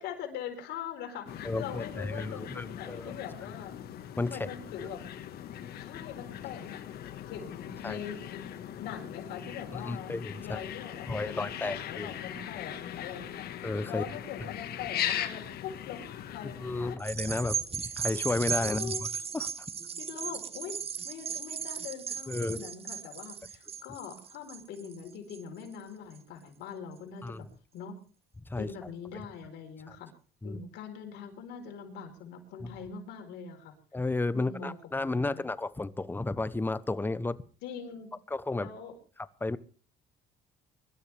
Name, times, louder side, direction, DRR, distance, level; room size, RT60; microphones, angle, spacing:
voice 1, 0.0-3.7 4.2-5.0 5.8-6.8 7.3-13.5 13.9-16.0 16.3-17.4 17.8-17.9 18.6-19.0 20.0-20.8 21.0-27.5 27.7-28.0 28.6-30.1 30.4-33.7 34.3-35.5 37.6-38.1 38.5-38.9, left 7 dB, 85° left, 4 dB, 4.4 m, -42 dB
sound 1, 1.3-17.0, left 10 dB, 65° left, 1.7 m, -40 dB
voice 2, 1.4-3.1 4.2-4.5 7.8-8.0 9.7-10.6 11.1-12.1 13.6-14.0 16.6-19.1 19.3-19.5 22.3-22.7 27.2-27.4 28.5-28.7 30.4-30.6 32.6-32.7 33.9-37.4 38.3-38.7 39.4-39.6, left 2 dB, 10° left, 15 dB, 0.9 m, -32 dB
sound 2, 17.0-25.7 26.2-26.3, right 7 dB, 35° right, 1.0 m, -36 dB
24.0 x 13.0 x 3.5 m, 0.39 s
cardioid pair, 110°, 17 cm